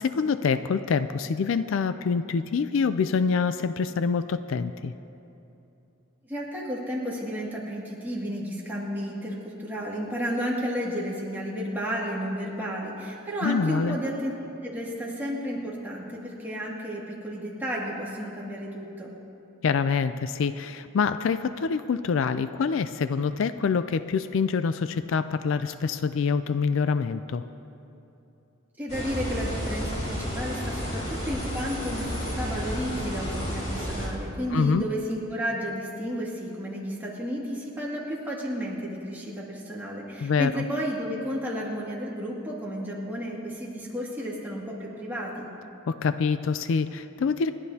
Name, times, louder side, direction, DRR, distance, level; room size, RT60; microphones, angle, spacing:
voice 1, 0.0-4.9 13.4-14.0 19.6-27.4 34.5-34.8 40.2-40.6 45.9-47.5, left 5 dB, 60° left, 11 dB, 0.4 m, -26 dB
voice 2, 6.2-14.3 14.6-19.1 28.8-45.5, equal, 10° right, -5 dB, 2.2 m, -32 dB
sound 1, 28.9-34.1, equal, 30° left, 3.9 m, -31 dB
28.5 x 11.0 x 2.8 m, 2.8 s
head